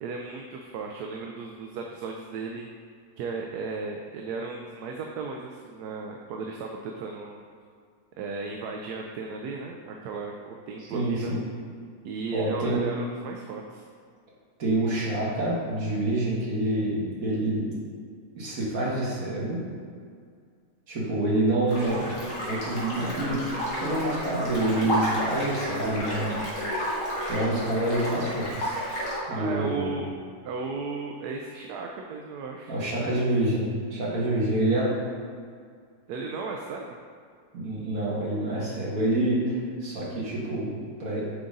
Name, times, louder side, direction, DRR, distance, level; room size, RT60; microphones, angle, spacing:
voice 1, 0.0-2.7 3.2-7.4 8.2-11.4 12.0-13.8 29.3-30.1 30.4-32.8 36.1-37.0, right 4 dB, 75° right, 1 dB, 1.1 m, -35 dB
voice 2, 10.9-11.4 12.3-12.8 14.6-17.7 18.4-19.6 20.9-22.2 22.5-23.4 23.8-26.4 27.3-28.8 29.3-30.0 32.7-34.9 37.5-41.3, right 1 dB, 60° right, -6 dB, 2.0 m, -27 dB
sound 1, 21.7-29.2, equal, 50° left, 1.9 m, -31 dB
8.5 x 4.0 x 3.8 m, 2.1 s
omnidirectional pair, 1.7 m